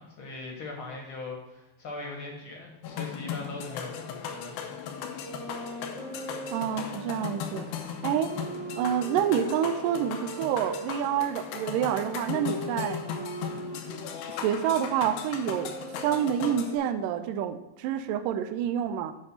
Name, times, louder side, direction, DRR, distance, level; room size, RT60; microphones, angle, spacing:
voice 1, 0.0-4.5, left 3 dB, 55° left, 0 dB, 1.5 m, -40 dB
sound 1, 2.8-16.8, left 7 dB, 85° left, 2.6 m, -37 dB
sound 2, 5.2-10.8 11.5-17.0, right 1 dB, 55° right, 3.4 m, -40 dB
voice 2, 6.5-8.3 8.8-13.0 14.3-15.7 16.0-19.1, right 9 dB, 80° right, 9 dB, 2.0 m, -28 dB
8.8 x 5.3 x 5.8 m, 0.96 s
omnidirectional pair, 4.3 m